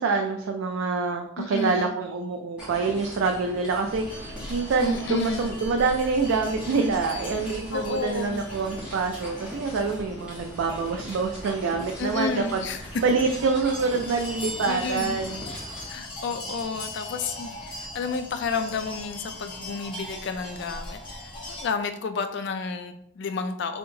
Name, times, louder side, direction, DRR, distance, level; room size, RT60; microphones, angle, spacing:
voice 1, 0.0-12.6 13.0-15.5, right 4 dB, 70° right, 3 dB, 0.3 m, -26 dB
voice 2, 1.4-2.0 4.8-5.5 7.7-8.4 12.0-12.8 14.7-15.2 15.9-23.8, left 4 dB, 55° left, 8 dB, 0.3 m, -31 dB
sound 1, 2.6-15.8, equal, 5° right, 1.1 m, -41 dB
sound 2, 3.9-21.6, left 1 dB, 25° left, 1.1 m, -40 dB
4.3 x 2.7 x 2.7 m, 0.73 s
head